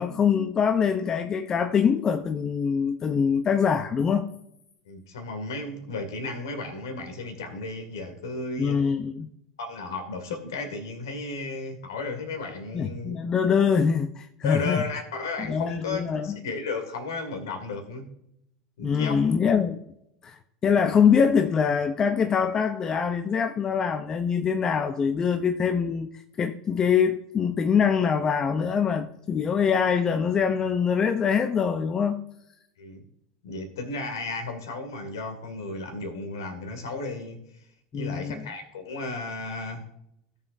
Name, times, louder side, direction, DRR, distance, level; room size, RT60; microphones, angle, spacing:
voice 1, 0.0-4.3 8.6-9.3 12.7-14.8 15.5-16.4 18.8-19.8 20.2-20.4 20.6-26.1 26.4-32.2 37.9-38.4, left 6 dB, 30° left, 0.6 m, -24 dB
voice 2, 4.9-8.8 9.6-13.2 14.4-18.1 18.8-19.3 32.8-33.0 33.4-37.4 37.9-39.8, left 3 dB, 75° left, 2.1 m, -34 dB
17.0 x 7.1 x 2.6 m
hypercardioid pair, 85°, 2 cm